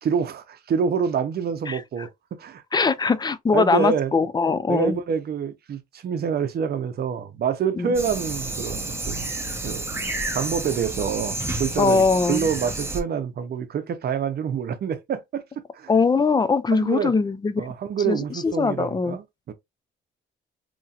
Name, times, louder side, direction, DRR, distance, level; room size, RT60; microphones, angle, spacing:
voice 1, 0.0-2.6 3.5-4.1 4.7-9.3 9.6-9.8 10.3-12.0 12.3-15.4 15.7-15.9 16.7-17.1 17.6-19.5, right 7 dB, 50° right, 0.7 m, -26 dB
voice 2, 2.7-5.0 7.8-7.9 11.8-12.5 15.9-17.6 18.1-19.2, left 4 dB, 20° left, 0.4 m, -21 dB
sound 1, 7.9-13.0, right 2 dB, 10° right, 0.7 m, -30 dB
3.0 x 2.7 x 2.3 m
cardioid pair, 90°, 20 cm